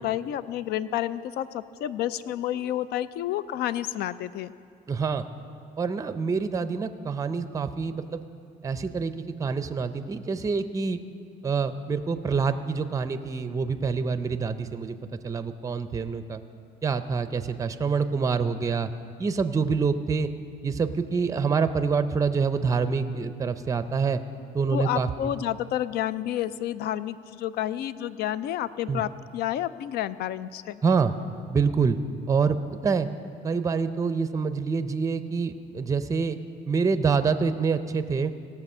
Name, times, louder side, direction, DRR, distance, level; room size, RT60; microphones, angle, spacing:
voice 1, 0.0-4.5 24.7-30.8, left 12 dB, 70° left, 16 dB, 0.4 m, -30 dB
voice 2, 4.9-5.2 5.8-8.2 8.6-11.0 11.4-16.4 16.8-18.9 19.2-20.3 20.6-24.2 24.5-25.1 28.9-29.0 30.8-31.1 31.5-32.0 32.3-33.1 33.4-36.4 36.7-38.3, right 5 dB, 20° right, 11 dB, 0.5 m, -26 dB
17.0 x 7.0 x 5.5 m, 2.3 s
cardioid pair, 110°, 17 cm